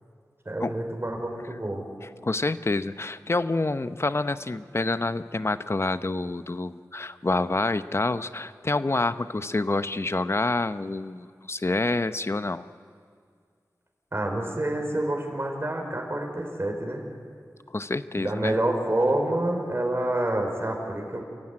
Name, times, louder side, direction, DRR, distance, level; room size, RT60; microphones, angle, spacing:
voice 1, 0.4-1.8 14.1-17.0 18.2-21.2, right 1 dB, 35° right, 1 dB, 4.4 m, -27 dB
voice 2, 2.2-12.7 17.7-18.5, left 2 dB, 40° left, 13 dB, 0.8 m, -27 dB
28.0 x 15.0 x 10.0 m, 2.2 s
wide cardioid pair, 55°, 7 cm